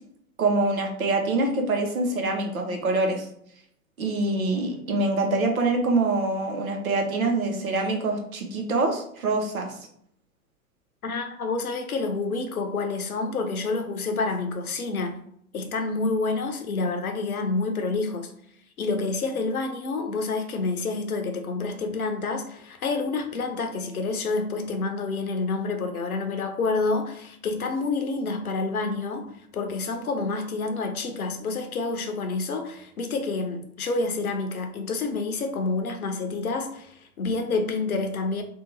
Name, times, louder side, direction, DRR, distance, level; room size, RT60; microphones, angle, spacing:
voice 1, 0.4-3.2 4.0-9.7, right 2 dB, 70° right, 0.9 m, -25 dB
voice 2, 11.0-15.2 15.5-18.3 18.8-38.4, left 3 dB, 75° left, 0.7 m, -28 dB
2.8 x 2.4 x 3.8 m
figure-of-eight pair, 100°, 43 cm